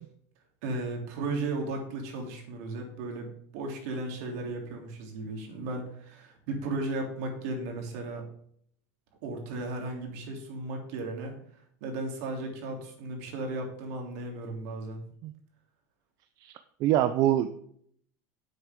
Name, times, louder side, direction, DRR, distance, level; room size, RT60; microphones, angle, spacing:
voice 1, 0.6-8.2 9.2-11.3 11.8-15.0, right 2 dB, 70° right, 2 dB, 3.3 m, -35 dB
voice 2, 16.8-17.5, right 12 dB, 50° right, 9 dB, 0.6 m, -24 dB
11.0 x 7.8 x 3.8 m, 0.64 s
supercardioid pair, 140°, 8 cm